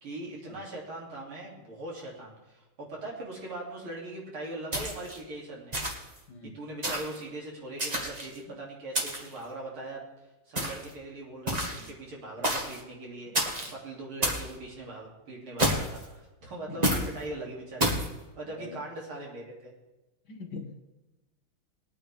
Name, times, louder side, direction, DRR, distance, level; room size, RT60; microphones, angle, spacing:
voice 1, 0.0-5.8 6.5-10.1 10.5-18.1 18.4-19.7, right 2 dB, 70° right, -3 dB, 3.8 m, -41 dB
sound 1, 4.7-5.2 5.7-6.2 6.8-7.2 7.8-8.4 8.9-9.4 10.6-10.9 11.5-11.9 12.4-12.8 13.3-13.7 14.2-14.5 15.6-16.0 16.8-17.1 17.8-18.1, equal, 20° right, 1.5 m, -29 dB
voice 2, 6.3-6.6 8.5-8.6 11.8-11.9 13.3-13.7 14.2-14.4 16.7-16.9 18.5-18.8 20.3-20.7, left 3 dB, 55° left, 3 dB, 1.7 m, -44 dB
21.0 x 9.2 x 3.5 m, 1.1 s
omnidirectional pair, 2.4 m